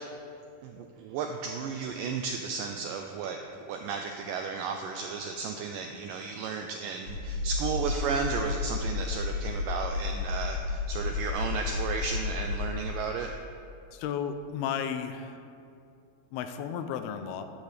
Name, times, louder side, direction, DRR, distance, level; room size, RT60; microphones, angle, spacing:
voice 1, 0.6-13.3, right 5 dB, 90° right, 4 dB, 1.9 m, -34 dB
sound 1, 7.1-12.8, left 4 dB, 50° left, 1.9 m, -32 dB
voice 2, 13.9-15.4 16.3-17.4, left 8 dB, 85° left, 8 dB, 2.5 m, -33 dB
13.5 x 10.5 x 3.4 m, 2.5 s
omnidirectional pair, 4.5 m